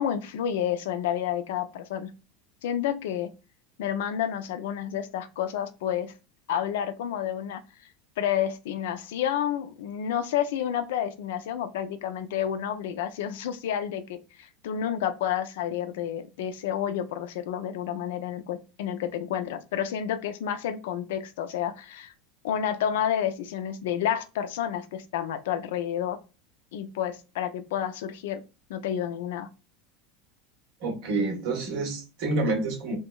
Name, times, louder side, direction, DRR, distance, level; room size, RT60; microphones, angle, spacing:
voice 1, 0.0-2.1 2.6-3.3 3.8-6.1 6.5-7.6 8.2-22.1 22.4-26.2 26.7-28.4 28.7-29.5, left 9 dB, 75° left, 0.5 m, -30 dB
voice 2, 30.8-33.0, right 2 dB, 65° right, 1.3 m, -28 dB
3.4 x 2.0 x 2.3 m
supercardioid pair, 110°, 0 cm